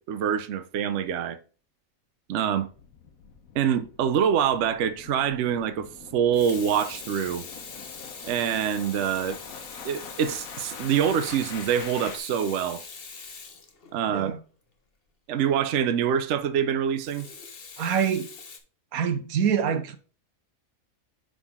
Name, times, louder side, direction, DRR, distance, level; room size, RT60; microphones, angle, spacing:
voice 1, 0.1-1.4 2.3-2.7 3.5-5.9 6.1-7.5 8.2-9.4 9.8-12.8 13.9-14.3 15.3-17.3, right 8 dB, 60° right, 0.9 m, -25 dB
sound 1, 2.7-12.2, left 6 dB, 80° left, 1.4 m, -45 dB
Water tap faucet / Sink (filling or washing), 4.5-4.8 6.1-14.3 17.0-18.6, left 5 dB, 45° left, 1.2 m, -43 dB
voice 2, 14.1-14.4 17.8-18.3 18.9-20.0, right 7 dB, 85° right, 1.3 m, -25 dB
9.8 x 3.9 x 3.6 m
omnidirectional pair, 1.5 m